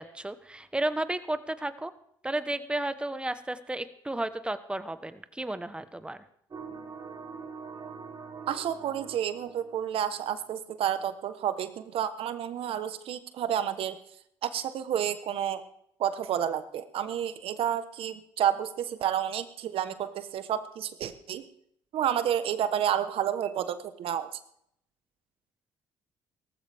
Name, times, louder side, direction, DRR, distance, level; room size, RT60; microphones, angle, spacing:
voice 1, 0.0-1.9 2.2-6.2, right 1 dB, 10° right, 12 dB, 1.2 m, -33 dB
sound 1, 6.5-10.4, right 5 dB, 40° right, 1.8 m, -43 dB
voice 2, 8.5-14.0 14.4-15.6 16.0-21.4 21.9-24.4, right 10 dB, 65° right, 11 dB, 1.2 m, -30 dB
17.5 x 14.5 x 3.6 m, 0.72 s
supercardioid pair, 65°, 10 cm